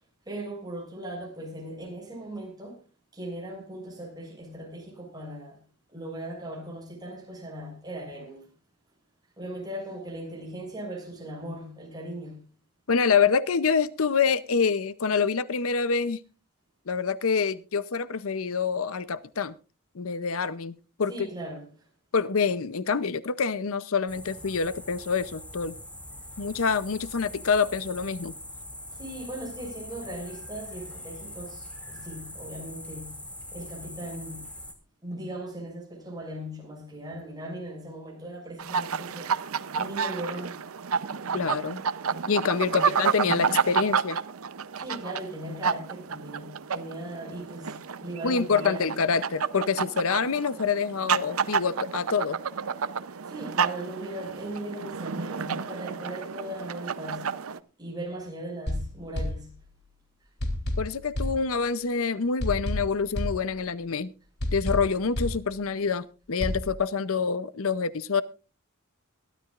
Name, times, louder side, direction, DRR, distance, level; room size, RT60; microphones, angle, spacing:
voice 1, 0.3-2.8 3.1-5.6 5.9-8.5 9.4-12.5 21.1-21.7 28.9-33.2 33.5-34.4 35.0-39.4 39.8-40.6 42.6-43.0 44.8-48.9 53.3-57.3 57.8-59.5, right 1 dB, 20° right, 6.4 m, -38 dB
voice 2, 12.9-16.2 16.9-19.5 20.0-21.3 22.1-25.7 26.4-28.3 41.3-41.8 42.3-44.2 48.2-52.4 60.8-64.1 64.5-68.2, left 5 dB, 70° left, 0.7 m, -26 dB
sound 1, 24.1-34.7, left 1 dB, 5° left, 2.5 m, -42 dB
sound 2, 38.6-57.6, right 6 dB, 70° right, 0.7 m, -30 dB
sound 3, 58.7-60.0 60.4-62.0 62.4-64.0 64.4-66.0 66.4-66.7, left 1 dB, 55° left, 3.1 m, -32 dB
22.5 x 12.5 x 2.5 m
head